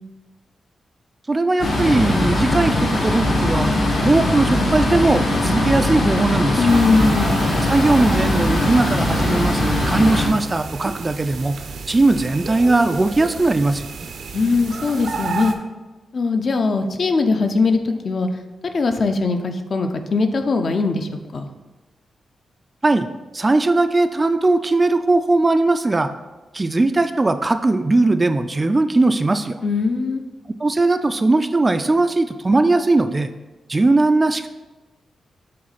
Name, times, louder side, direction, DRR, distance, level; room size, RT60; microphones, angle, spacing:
voice 1, 1.3-3.7 4.0-6.7 7.6-11.6 11.9-13.9 22.8-23.1 23.3-26.1 26.5-29.6 30.6-33.3 33.7-34.5, right 2 dB, 25° right, 9 dB, 0.3 m, -19 dB
sound 1, 1.6-10.3, left 1 dB, 75° left, 1.8 m, -20 dB
voice 2, 6.6-7.4 14.3-15.5 16.1-18.3 18.7-21.5 29.6-30.2, left 4 dB, 50° left, 6 dB, 0.6 m, -20 dB
sound 2, 6.7-15.5, right 5 dB, 75° right, 0.6 m, -32 dB
7.6 x 3.7 x 4.1 m, 1.2 s
wide cardioid pair, 115°, 0 cm